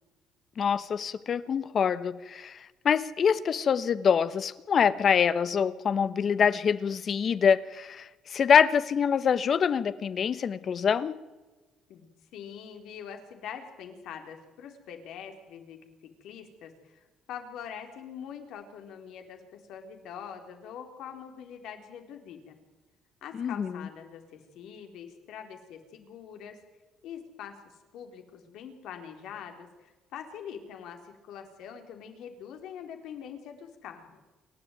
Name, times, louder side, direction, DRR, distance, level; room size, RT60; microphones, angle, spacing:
voice 1, 0.6-11.2 23.4-23.8, left 7 dB, 45° left, 1.1 m, -25 dB
voice 2, 11.9-15.8 16.2-22.6 23.2-26.6 27.0-34.2, left 8 dB, 75° left, 3.8 m, -44 dB
27.5 x 12.5 x 9.3 m
cardioid pair, 125°, 0 cm